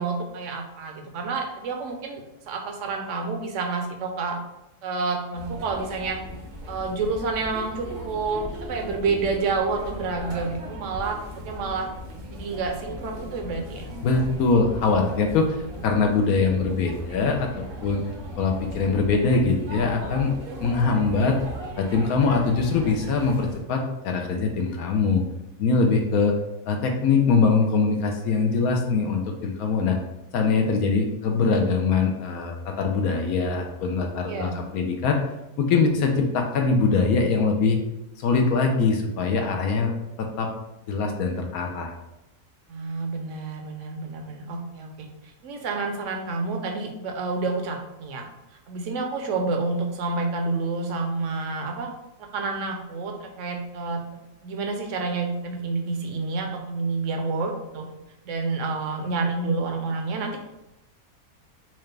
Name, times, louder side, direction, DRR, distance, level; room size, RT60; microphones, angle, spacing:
voice 1, 0.0-4.4 4.8-6.2 6.7-11.2 11.4-11.9 12.3-13.9 34.3-34.5 42.7-45.1 45.4-48.3 48.7-51.9 52.2-54.0 54.4-57.9 58.3-60.4, right 4 dB, 65° right, 3 dB, 0.9 m, -29 dB
sound 1, 5.3-23.6, equal, 85° right, 1.4 m, -38 dB
voice 2, 14.0-15.6 15.8-18.0 18.4-20.3 20.6-21.4 21.8-25.2 25.6-26.3 26.7-30.0 30.3-35.2 35.6-37.8 38.2-39.9 40.2-40.5 40.9-41.9, left 4 dB, 75° left, 2 dB, 1.0 m, -22 dB
4.4 x 2.4 x 3.2 m, 0.91 s
omnidirectional pair, 1.6 m